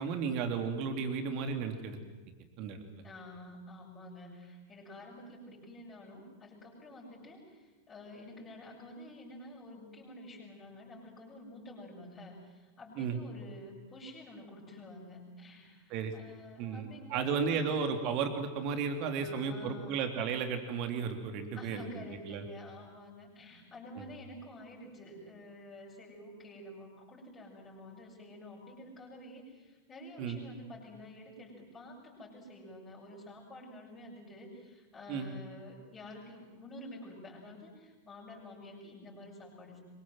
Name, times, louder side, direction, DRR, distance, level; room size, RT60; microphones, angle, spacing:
voice 1, 0.0-2.0 2.6-2.8 13.0-13.2 15.9-16.1 16.6-22.4 24.0-24.1 30.2-30.4 35.1-35.3, right 6 dB, 40° right, 6 dB, 3.4 m, -34 dB
voice 2, 3.0-17.6 19.2-20.1 21.5-39.8, left 1 dB, 15° left, -7 dB, 7.2 m, -49 dB
25.5 x 23.5 x 7.9 m, 1.2 s
figure-of-eight pair, 90°, 0 cm